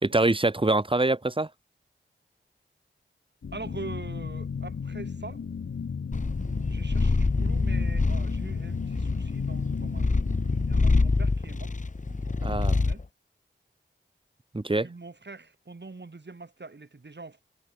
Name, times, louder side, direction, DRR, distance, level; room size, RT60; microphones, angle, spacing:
voice 1, 0.0-1.5 12.4-12.8 14.5-14.9, right 2 dB, 25° right, 1.4 m, -24 dB
sound 1, 3.4-11.1, left 6 dB, 85° left, 1.0 m, -35 dB
voice 2, 3.5-5.4 6.7-10.2 10.6-11.7 12.1-13.0 14.8-17.4, right 3 dB, 55° right, 4.8 m, -43 dB
Purr, 6.1-13.0, left 3 dB, 40° left, 1.1 m, -26 dB
wide cardioid pair, 50°, 21 cm